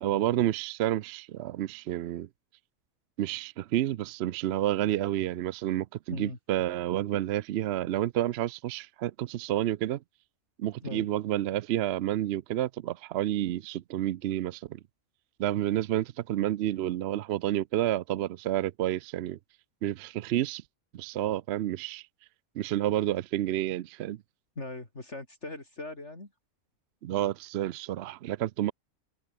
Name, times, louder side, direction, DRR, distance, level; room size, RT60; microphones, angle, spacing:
voice 1, 0.0-2.3 3.2-10.0 10.6-14.8 15.4-19.4 19.8-20.6 20.9-22.0 22.6-24.2 27.0-28.7, right 13 dB, 65° right, 0.7 m, -30 dB
voice 2, 24.6-26.3, left 2 dB, 50° left, 4.8 m, -39 dB
omnidirectional pair, 1.5 m